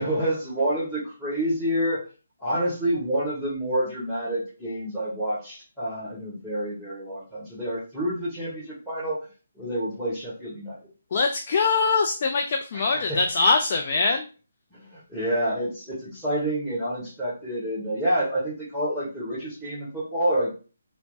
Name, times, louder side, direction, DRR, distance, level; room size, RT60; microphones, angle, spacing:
voice 1, 0.0-2.0 2.4-9.2 9.5-10.8 12.9-13.2 14.7-20.5, right 1 dB, ahead, -10 dB, 1.2 m, -28 dB
voice 2, 11.1-14.3, left 4 dB, 45° left, 4 dB, 0.3 m, -23 dB
3.0 x 2.0 x 2.7 m, 0.35 s
figure-of-eight pair, 140°, 0 cm